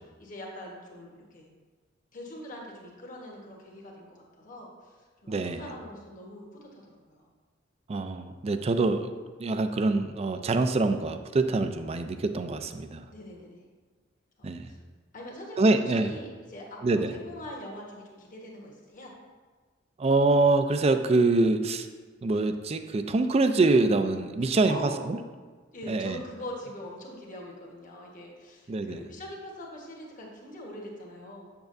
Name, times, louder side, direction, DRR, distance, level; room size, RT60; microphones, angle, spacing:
voice 1, 0.2-1.5 2.1-7.3 13.1-13.7 14.4-14.8 15.1-19.1 24.4-25.0 25.7-31.5, equal, 45° left, -1 dB, 1.3 m, -43 dB
voice 2, 5.3-5.6 7.9-9.1 9.4-13.0 14.4-14.7 15.6-16.1 16.8-17.1 20.0-21.9 22.2-24.8 25.1-25.2 25.9-26.2 28.7-29.0, right 3 dB, 35° right, 8 dB, 0.4 m, -25 dB
7.4 x 7.1 x 2.6 m, 1.4 s
head